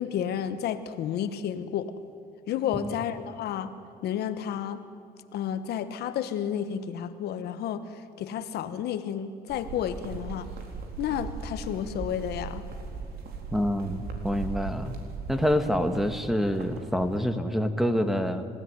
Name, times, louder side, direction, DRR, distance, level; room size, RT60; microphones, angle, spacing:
voice 1, 0.0-1.9 2.5-3.7 4.0-4.8 5.3-7.8 8.2-10.5 11.0-12.6, left 9 dB, 70° left, 11 dB, 1.3 m, -31 dB
sound 1, 9.5-17.2, right 4 dB, 65° right, 4.1 m, -39 dB
voice 2, 13.5-15.0 15.3-18.5, equal, ahead, 8 dB, 1.7 m, -27 dB
26.5 x 16.5 x 9.7 m, 2.5 s
cardioid pair, 110°, 17 cm